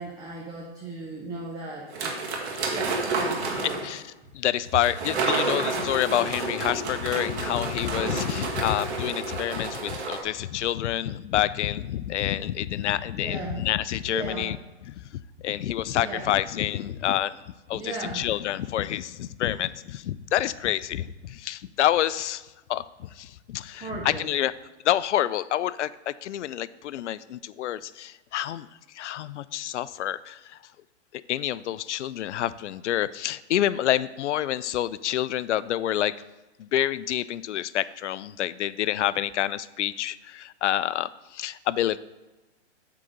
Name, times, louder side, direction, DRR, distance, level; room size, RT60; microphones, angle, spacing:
voice 1, 0.0-2.2 2.7-3.9 13.1-13.6 14.1-14.5 15.9-16.3 17.7-18.3 23.7-24.3, right 3 dB, 10° right, -2 dB, 0.7 m, -37 dB
sound 1, 1.9-3.9 4.8-10.2, right 3 dB, 70° right, 1.9 m, -30 dB
voice 2, 4.3-14.6 14.9-17.3 17.7-22.4 22.7-24.5 24.8-28.7 28.9-30.6 31.3-36.1 36.6-42.0, left 12 dB, 85° left, 17 dB, 0.5 m, -28 dB
8.3 x 3.9 x 6.4 m, 1.1 s
hypercardioid pair, 145°, 34 cm